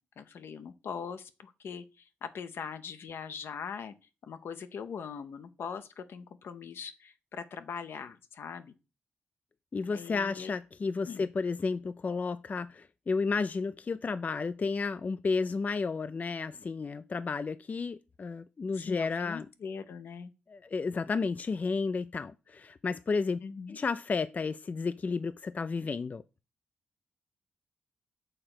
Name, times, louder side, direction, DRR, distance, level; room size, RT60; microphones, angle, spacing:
voice 1, 0.2-1.8 2.2-3.9 4.2-8.7 9.9-10.5 11.1-11.3 18.8-20.3 23.4-23.8, left 6 dB, 75° left, 0.7 m, -41 dB
voice 2, 9.7-19.5 20.5-23.4 23.7-26.2, left 4 dB, 40° left, 0.3 m, -32 dB
6.6 x 3.3 x 5.9 m
cardioid pair, 55°, 4 cm